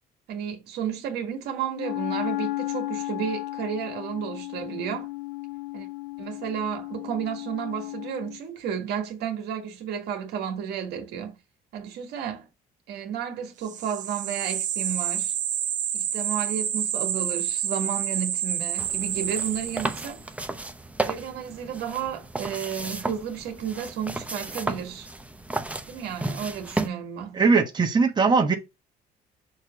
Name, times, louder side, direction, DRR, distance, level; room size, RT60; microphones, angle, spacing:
voice 1, 0.3-5.1 5.7-5.9 6.2-11.3 11.7-12.5 12.9-15.3 15.9-20.2 21.1-25.1 25.9-27.4, right 8 dB, 80° right, 1.8 m, -32 dB
Wind instrument woodwind instrument, 1.7-8.4, left 20 dB, 80° left, 0.7 m, -34 dB
sound 1, 13.7-20.2, right 9 dB, 45° right, 0.6 m, -29 dB
sound 2, 18.8-26.9, right 2 dB, 10° right, 0.7 m, -33 dB
voice 2, 27.4-28.5, right 4 dB, 25° right, 1.1 m, -20 dB
6.5 x 2.9 x 5.0 m
cardioid pair, 110°, 17 cm